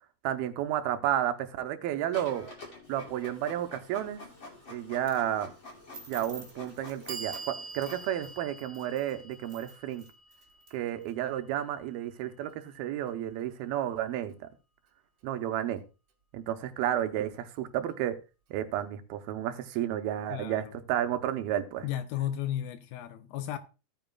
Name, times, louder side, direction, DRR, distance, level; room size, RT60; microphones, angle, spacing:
voice 1, 0.2-2.5 2.9-4.2 4.7-5.5 6.1-10.1 10.7-14.3 15.2-15.8 16.3-18.2 18.5-21.9, right 11 dB, 80° right, 2.4 m, -32 dB
Printer, 2.1-8.4, left 2 dB, 35° left, 2.7 m, -48 dB
Clock, 5.1-5.2 6.1-6.2 6.8-12.8, right 4 dB, 60° right, 1.5 m, -46 dB
sound 1, 5.9-11.1, right 3 dB, 20° right, 2.2 m, -51 dB
voice 2, 20.3-20.6 21.8-23.6, left 11 dB, 80° left, 2.3 m, -34 dB
16.0 x 9.1 x 2.3 m
omnidirectional pair, 4.6 m